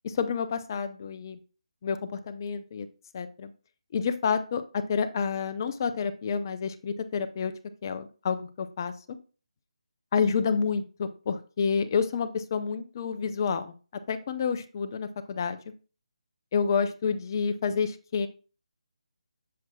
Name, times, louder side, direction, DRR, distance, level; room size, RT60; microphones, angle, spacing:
voice 1, 0.0-1.4 1.8-2.9 3.1-3.5 3.9-7.5 7.8-8.9 10.1-13.7 14.1-15.6 16.5-18.3, left 6 dB, 35° left, 9 dB, 0.7 m, -29 dB
7.2 x 6.0 x 2.3 m, 0.34 s
figure-of-eight pair, 160°, 4 cm